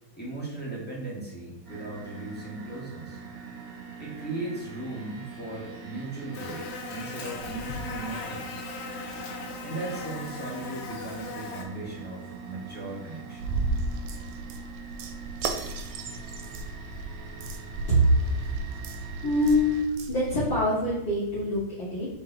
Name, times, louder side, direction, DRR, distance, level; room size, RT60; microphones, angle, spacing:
voice 1, 0.1-3.2 4.0-8.5 9.6-13.5, right 2 dB, 5° left, -6 dB, 0.8 m, -37 dB
sound 1, 1.6-19.8, right 5 dB, 50° right, 2.0 m, -43 dB
Buzz, 6.3-11.6, left 4 dB, 75° left, 2.2 m, -38 dB
sound 2, 13.4-20.6, right 3 dB, 85° right, 2.1 m, -34 dB
voice 2, 19.2-19.8 20.1-22.1, equal, 40° left, -12 dB, 2.5 m, -25 dB
5.3 x 4.4 x 4.0 m, 0.94 s
omnidirectional pair, 3.4 m